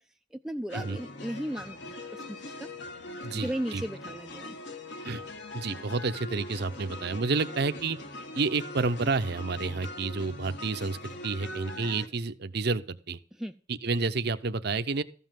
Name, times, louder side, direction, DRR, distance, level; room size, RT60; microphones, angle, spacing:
voice 1, 0.3-2.7 3.3-4.6 13.4-13.5, equal, 5° right, 0.4 m, -36 dB
sound 1, 0.7-12.1, left 2 dB, 65° left, 1.4 m, -42 dB
voice 2, 3.2-3.8 5.0-5.2 5.5-8.0 8.3-13.2 13.7-15.0, right 4 dB, 60° right, 0.7 m, -30 dB
14.0 x 5.5 x 7.5 m
head